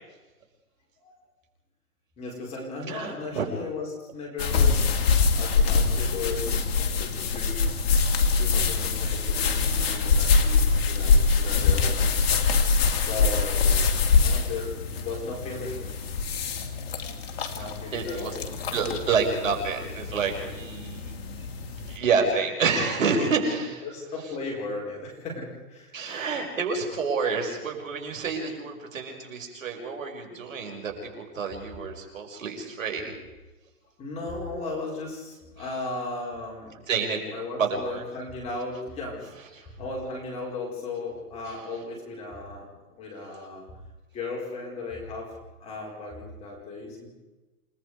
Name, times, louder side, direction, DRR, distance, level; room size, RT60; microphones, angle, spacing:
voice 1, 2.2-4.9 5.3-7.6 8.4-12.0 12.9-13.7 14.2-15.8 17.5-18.6 22.6-22.7 23.8-26.2 34.0-36.7 37.3-43.6 44.1-47.1, left 3 dB, 15° left, -2 dB, 4.4 m, -36 dB
voice 2, 2.9-3.5 17.9-18.4 18.7-23.8 25.9-33.1 35.6-35.7 36.9-37.2 37.6-38.0 39.6-39.7 41.5-41.6, right 5 dB, 60° right, 2 dB, 5.7 m, -28 dB
sound 1, 4.4-22.0, left 5 dB, 40° left, 2.5 m, -24 dB
28.5 x 19.0 x 4.9 m, 1.1 s
hypercardioid pair, 160°, 45 cm